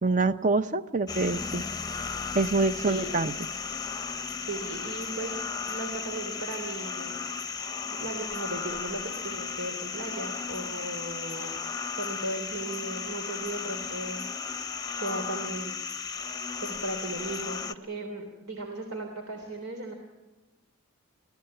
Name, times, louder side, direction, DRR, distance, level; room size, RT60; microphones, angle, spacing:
voice 1, 0.0-1.6 2.3-3.3, right 3 dB, 35° right, 12 dB, 0.7 m, -25 dB
sound 1, 1.1-17.7, left 5 dB, 20° left, 0.7 m, -35 dB
voice 2, 2.7-3.1 4.4-7.2 8.0-15.8 16.6-19.9, right 2 dB, 85° right, 4 dB, 3.2 m, -37 dB
25.0 x 17.0 x 8.8 m, 1.1 s
head